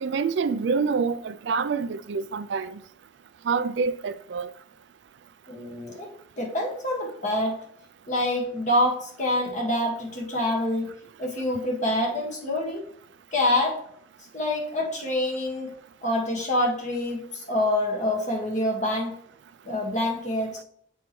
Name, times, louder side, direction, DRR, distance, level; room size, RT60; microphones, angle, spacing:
voice 1, 0.0-2.8 3.4-4.5, right 5 dB, 80° right, 0.4 m, -26 dB
voice 2, 5.5-6.1 6.4-7.6 8.1-10.9 11.2-12.8 13.3-13.8 14.3-15.7 16.0-19.2 19.6-20.6, left 1 dB, 40° left, 1.7 m, -26 dB
6.8 x 4.5 x 3.1 m
head